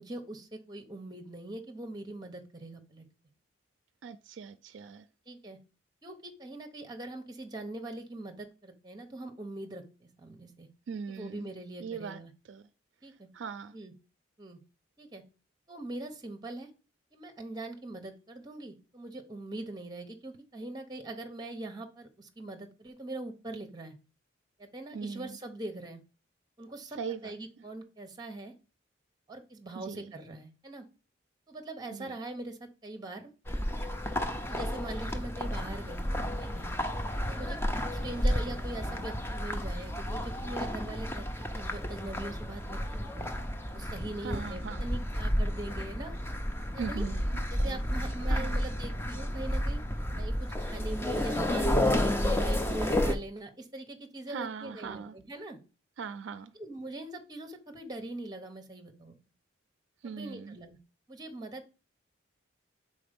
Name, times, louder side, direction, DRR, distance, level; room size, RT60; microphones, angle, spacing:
voice 1, 0.0-3.0 5.3-5.6 6.0-10.7 11.1-12.3 13.0-13.3 13.7-13.9 14.4-14.6 15.0-15.2 15.7-16.7 17.1-23.9 24.6-26.0 26.6-28.5 29.3-30.9 31.5-33.3 34.5-36.7 37.3-37.6 37.9-43.4 43.7-46.2 46.7-47.0 47.5-49.8 50.2-55.6 56.5-59.2 60.0-60.8 61.1-61.8, right 2 dB, 20° right, 0.8 m, -42 dB
voice 2, 4.0-5.0 10.9-11.5 11.8-12.2 12.5-12.6 13.3-13.7 24.9-25.4 27.0-27.3 29.9-30.1 31.9-32.2 44.2-44.9 46.8-47.2 47.6-47.8 48.3-48.6 54.3-55.1 56.0-56.5 60.0-60.6, right 6 dB, 70° right, 0.4 m, -39 dB
sound 1, 33.5-53.1, left 1 dB, 10° left, 0.5 m, -31 dB
5.1 x 4.0 x 5.1 m
head